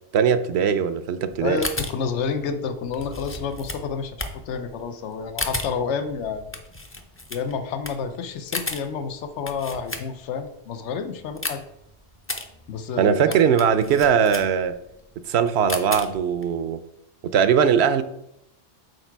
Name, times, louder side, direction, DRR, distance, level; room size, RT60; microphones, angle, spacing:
voice 1, 0.1-1.6 13.0-14.8 15.3-16.8 17.2-18.0, right 7 dB, 75° right, 12 dB, 0.8 m, -20 dB
sound 1, 1.3-10.5 10.8-16.4, left 2 dB, 15° left, 0.5 m, -34 dB
voice 2, 1.4-6.6 7.3-11.6 12.7-13.4, left 5 dB, 90° left, 9 dB, 0.9 m, -29 dB
6.5 x 4.7 x 4.5 m, 0.79 s
omnidirectional pair, 1.1 m